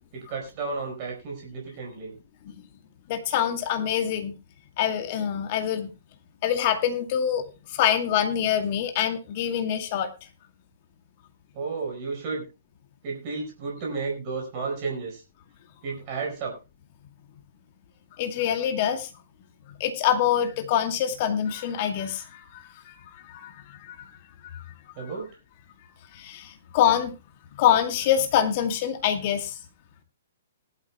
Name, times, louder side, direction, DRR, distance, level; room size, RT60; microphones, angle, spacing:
voice 1, 0.1-2.1 11.5-12.5 13.0-15.2 15.8-16.6 24.9-25.3, right 4 dB, 35° right, 0 dB, 4.8 m, -32 dB
voice 2, 3.1-4.4 4.8-5.9 6.4-10.1 18.2-19.1 19.8-24.1 24.4-24.6 26.1-27.2 27.6-29.6, left 9 dB, 40° left, 6 dB, 2.2 m, -25 dB
19.5 x 12.0 x 2.2 m, 0.28 s
figure-of-eight pair, 120°, 0 cm